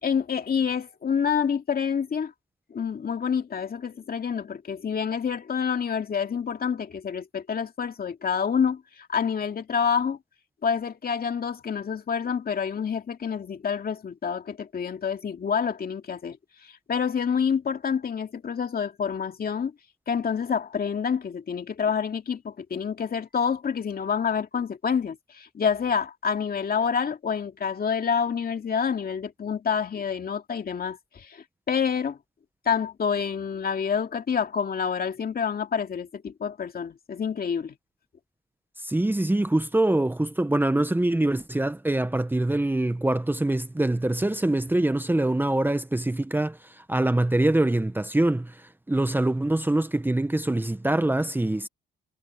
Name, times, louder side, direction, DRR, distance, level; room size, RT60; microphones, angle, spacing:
voice 1, 0.0-2.3 2.7-10.2 10.6-16.4 16.6-19.7 20.1-32.2 32.7-37.7, left 6 dB, 45° left, 2.4 m, -28 dB
voice 2, 38.8-51.7, right 1 dB, 10° right, 1.1 m, -24 dB
supercardioid pair, 70°, 21 cm